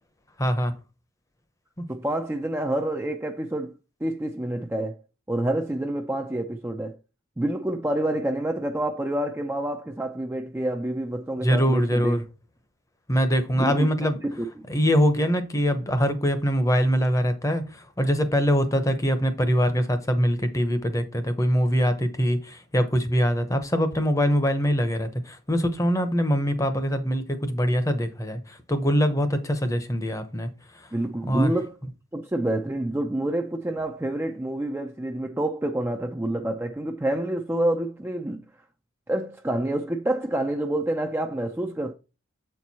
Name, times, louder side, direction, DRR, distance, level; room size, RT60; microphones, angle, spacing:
voice 1, 0.4-0.7 11.4-12.2 13.1-14.2 14.7-17.6 18.0-28.4 28.7-30.5 31.3-31.5, equal, 15° left, 0.8 m, -23 dB
voice 2, 1.9-3.7 4.0-5.0 5.3-7.0 7.4-12.2 13.6-13.9 14.2-14.7 30.9-31.8 32.1-38.4 39.1-41.9, right 1 dB, 10° right, 0.4 m, -28 dB
7.8 x 4.6 x 4.1 m
head